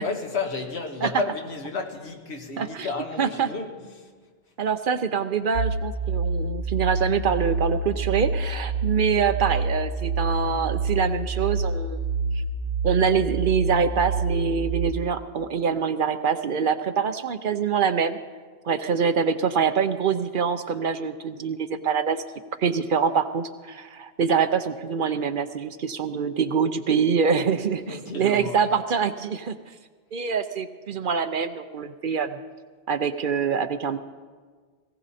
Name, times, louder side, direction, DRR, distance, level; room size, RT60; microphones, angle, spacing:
voice 1, 0.0-4.1 27.8-28.6, left 3 dB, 80° left, 1.6 m, -32 dB
voice 2, 2.6-2.9 3.2-3.5 4.6-12.4 12.8-18.2 18.6-22.2 22.6-29.6 30.1-32.4 32.9-34.0, right 6 dB, 55° right, 0.8 m, -25 dB
sound 1, 5.5-14.9, right 3 dB, 80° right, 1.0 m, -27 dB
18.5 x 16.0 x 4.2 m
omnidirectional pair, 1.1 m